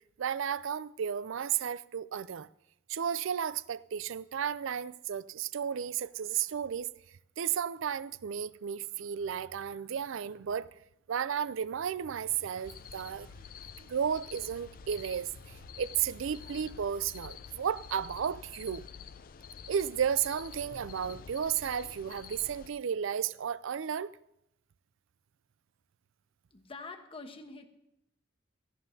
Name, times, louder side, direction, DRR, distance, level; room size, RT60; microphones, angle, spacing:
voice 1, 0.2-2.5 2.9-6.9 7.4-10.7 11.1-13.3 13.8-18.9 19.7-24.1, right 8 dB, 65° right, 0.4 m, -33 dB
sound 1, 12.6-22.7, left 7 dB, 45° left, 0.4 m, -48 dB
voice 2, 26.5-27.7, left 3 dB, 25° left, 1.1 m, -45 dB
17.0 x 15.0 x 2.8 m
head